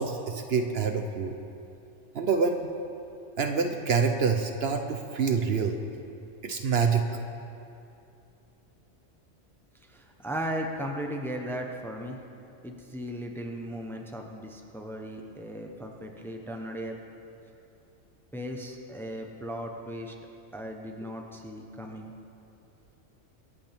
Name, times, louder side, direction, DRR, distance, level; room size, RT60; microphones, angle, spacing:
voice 1, 0.0-1.3 2.1-2.7 3.4-5.8 6.4-7.1, right 5 dB, 60° right, 5 dB, 0.9 m, -26 dB
voice 2, 9.9-12.2 12.6-17.0 18.3-20.1 20.5-22.1, equal, ahead, 2 dB, 0.8 m, -36 dB
24.5 x 8.4 x 3.5 m, 2.7 s
omnidirectional pair, 1.2 m